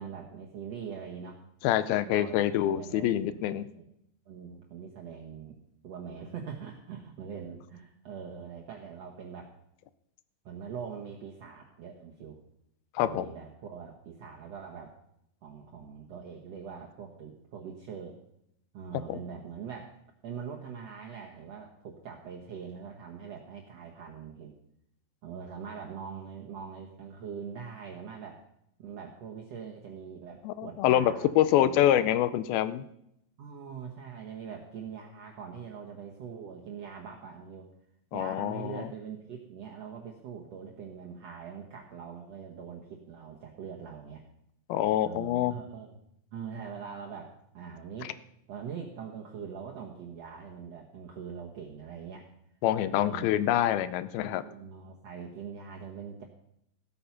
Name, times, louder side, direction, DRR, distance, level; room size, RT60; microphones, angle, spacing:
voice 1, 0.0-1.4 2.0-2.3 2.6-3.9 4.3-5.6 5.8-9.5 10.4-12.4 13.0-14.9 15.4-18.2 18.7-19.9 20.2-24.5 25.2-28.4 28.8-32.0 33.4-37.7 38.1-44.2 45.0-45.9 46.3-48.1 48.5-52.3 52.8-53.3 54.2-56.2, right 7 dB, 65° right, 0 dB, 1.7 m, -43 dB
voice 2, 1.6-3.7 13.0-13.3 19.1-19.2 30.5-32.8 38.1-38.9 44.7-45.5 52.6-54.4, left 12 dB, 85° left, 14 dB, 2.4 m, -26 dB
15.0 x 8.8 x 5.8 m, 0.77 s
omnidirectional pair, 4.3 m